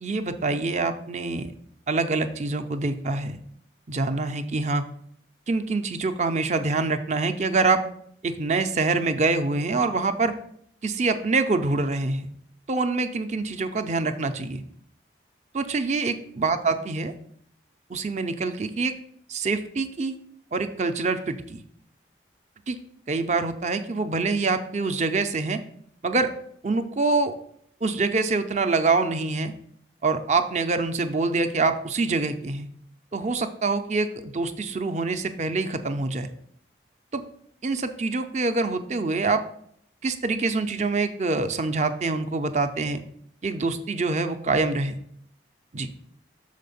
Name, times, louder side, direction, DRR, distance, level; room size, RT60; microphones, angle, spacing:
voice 1, 0.0-1.5 1.9-3.4 3.9-4.8 5.5-7.8 8.2-10.3 10.8-12.3 12.7-14.6 15.5-17.1 17.9-18.9 19.3-20.1 20.5-21.6 22.7-22.8 23.1-25.6 26.0-26.3 26.6-27.4 27.8-29.5 30.0-32.7 33.1-36.3 37.1-37.2 37.6-39.4 40.0-43.0 43.4-45.0 45.7-45.9, right 3 dB, 35° right, 8 dB, 0.5 m, -25 dB
6.5 x 4.2 x 5.4 m, 0.67 s
head